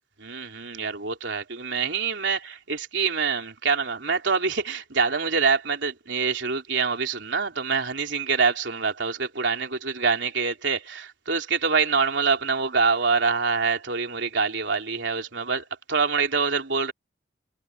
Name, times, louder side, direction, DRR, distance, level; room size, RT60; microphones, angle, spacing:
voice 1, 0.2-16.9, right 5 dB, 85° right, 3.4 m, -25 dB
head